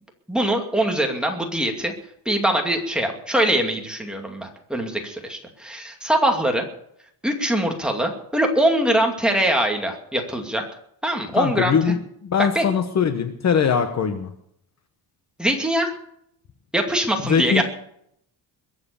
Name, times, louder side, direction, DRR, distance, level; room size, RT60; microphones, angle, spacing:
voice 1, 0.3-1.9 2.3-6.6 7.2-10.6 11.0-11.8 12.5-12.6 15.4-16.0 16.7-17.6, right 1 dB, ahead, 2 dB, 2.4 m, -22 dB
voice 2, 11.3-14.3 17.2-17.6, left 7 dB, 35° left, 8 dB, 1.1 m, -21 dB
22.5 x 7.9 x 6.9 m, 0.70 s
cardioid pair, 170°, 44 cm